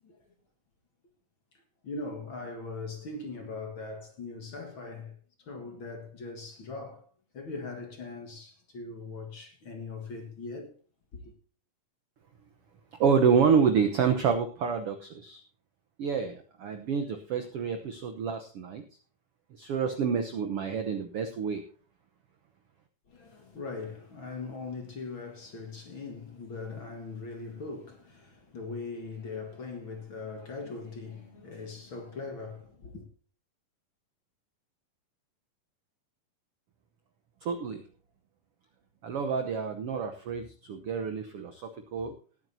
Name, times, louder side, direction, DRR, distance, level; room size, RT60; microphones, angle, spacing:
voice 1, 1.8-5.1 5.4-7.0 7.3-10.7 11.1-11.3 23.1-33.0, left 3 dB, 45° left, 1.9 m, -40 dB
voice 2, 13.0-15.4 16.0-18.8 19.6-21.6 37.4-37.8 39.0-42.1, right 6 dB, 85° right, 1.2 m, -28 dB
19.5 x 9.1 x 2.7 m
omnidirectional pair, 4.1 m